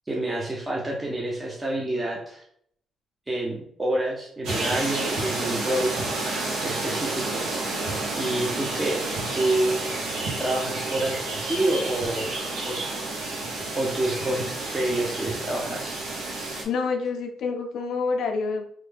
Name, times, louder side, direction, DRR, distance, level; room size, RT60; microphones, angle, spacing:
voice 1, 0.1-2.4 3.3-5.9 6.6-7.5 8.2-9.0 9.3-10.1 10.4-12.3 12.6-12.8 13.7-15.9, right 1 dB, 20° right, -3 dB, 0.7 m, -28 dB
sound 1, 4.4-16.6, right 2 dB, 90° right, 0.8 m, -30 dB
voice 2, 16.6-18.7, left 4 dB, 75° left, 4 dB, 0.5 m, -27 dB
3.1 x 2.2 x 3.3 m, 0.66 s
cardioid pair, 90°, 0 cm